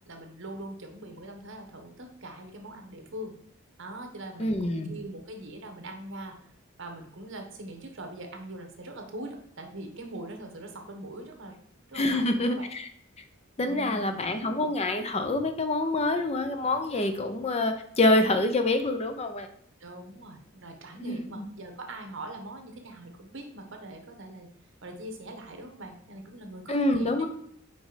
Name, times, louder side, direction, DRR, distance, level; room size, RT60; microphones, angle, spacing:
voice 1, 0.1-3.3 3.8-6.4 6.8-11.6 11.9-12.7 13.6-14.2 19.8-24.5 24.8-27.3, right 1 dB, 65° right, 4 dB, 1.1 m, -42 dB
voice 2, 4.4-4.9 11.9-12.9 13.6-19.5 21.0-21.5 26.7-27.3, left 2 dB, 30° left, 7 dB, 0.6 m, -26 dB
5.0 x 4.8 x 4.0 m, 0.65 s
head